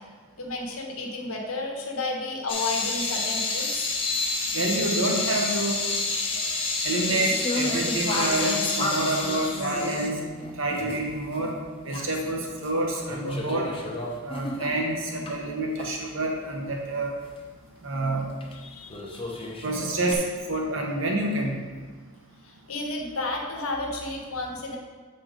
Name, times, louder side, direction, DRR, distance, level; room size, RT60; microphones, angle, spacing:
voice 1, 0.4-3.9 18.5-19.0 22.4-24.8, left 2 dB, 80° left, 1 dB, 1.2 m, -32 dB
sound 1, 2.5-11.1 11.4-11.5 11.9-12.7 13.0-15.3 15.8-15.9 18.4-18.5 18.9-20.1, left 3 dB, 25° left, 0.8 m, -29 dB
voice 2, 4.5-5.8 6.8-10.2 10.6-11.6 11.8-13.7 14.2-17.2 17.8-18.3 19.6-21.7, right 2 dB, 65° right, 0 dB, 1.2 m, -28 dB
7.6 x 4.4 x 5.0 m, 1.5 s
head